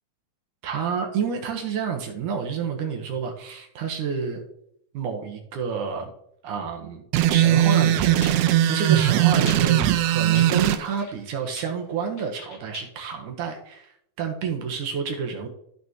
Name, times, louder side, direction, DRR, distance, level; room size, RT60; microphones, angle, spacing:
voice 1, 0.6-4.4 4.9-6.1 6.4-7.0 7.3-15.5, right 6 dB, 65° right, 3 dB, 2.4 m, -29 dB
sound 1, 7.1-10.8, right 12 dB, 90° right, 2.7 m, -19 dB
sound 2, 7.4-7.5 8.2-8.3 9.2-9.6 10.3-10.5 10.7-11.2 11.6-13.1, left 3 dB, 90° left, 5.5 m, -39 dB
14.0 x 6.0 x 3.0 m, 0.72 s
omnidirectional pair, 4.4 m